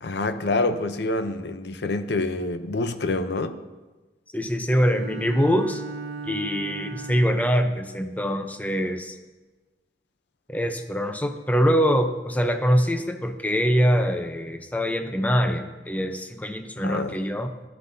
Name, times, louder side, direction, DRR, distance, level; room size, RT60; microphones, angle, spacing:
voice 1, 0.0-3.6 16.8-17.2, left 2 dB, 70° left, 10 dB, 0.7 m, -27 dB
voice 2, 4.3-5.8 6.2-9.2 10.5-17.5, equal, 10° left, 7 dB, 0.6 m, -24 dB
Bowed string instrument, 4.8-7.8, right 4 dB, 70° right, 1.0 m, -37 dB
13.5 x 11.0 x 2.7 m, 1.2 s
head